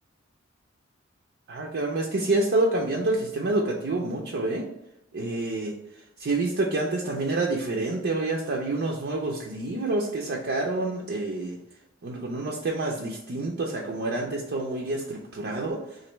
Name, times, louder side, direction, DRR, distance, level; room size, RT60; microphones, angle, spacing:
voice 1, 1.5-4.7 5.1-5.7 6.2-11.6 12.0-16.0, right 2 dB, 55° right, -1 dB, 0.4 m, -28 dB
3.0 x 2.5 x 4.3 m, 0.85 s
head